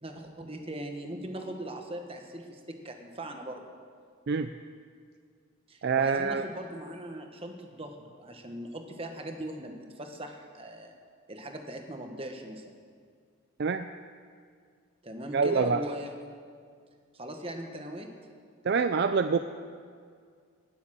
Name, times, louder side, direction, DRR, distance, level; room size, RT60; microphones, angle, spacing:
voice 1, 0.0-3.6 5.7-10.9 11.3-12.7 15.0-16.2 17.1-18.1, right 1 dB, 25° right, 4 dB, 1.3 m, -40 dB
voice 2, 5.8-6.4 13.6-13.9 15.3-15.8 18.6-19.4, right 5 dB, 50° right, 9 dB, 0.4 m, -25 dB
19.5 x 7.0 x 7.6 m, 2.1 s
head